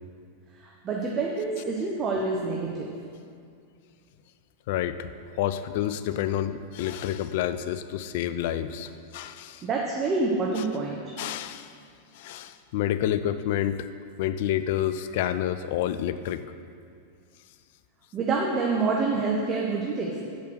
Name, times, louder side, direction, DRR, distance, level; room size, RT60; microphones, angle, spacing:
voice 1, 0.6-2.9 9.6-11.1 18.1-20.2, right 3 dB, 25° right, -1 dB, 0.8 m, -27 dB
voice 2, 4.7-5.1 5.4-9.6 10.5-10.6 11.2-11.7 12.1-13.9 14.2-16.4, left 11 dB, 50° left, 12 dB, 0.3 m, -29 dB
6.7 x 5.1 x 6.4 m, 2.3 s
figure-of-eight pair, 90°, 0 cm